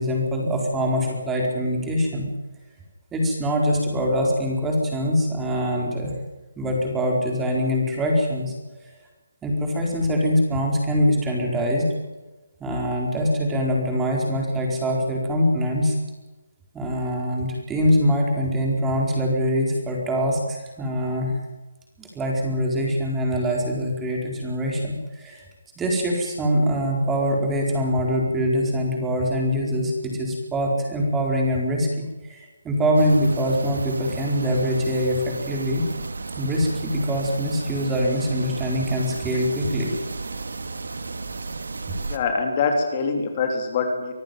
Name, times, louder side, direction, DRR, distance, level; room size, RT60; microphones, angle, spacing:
voice 1, 0.0-2.3 3.1-6.1 6.6-8.5 8.8-8.9 9.4-11.9 12.6-16.0 16.7-21.3 22.0-25.4 25.8-35.9 36.3-39.9, equal, 10° right, 0 dB, 4.4 m, -23 dB
sound 1, 32.9-42.2, right 3 dB, 75° right, 2.3 m, -33 dB
voice 2, 42.0-44.1, left 4 dB, 30° left, 3 dB, 3.4 m, -24 dB
24.5 x 14.5 x 9.2 m, 1.1 s
hypercardioid pair, 165°, 0 cm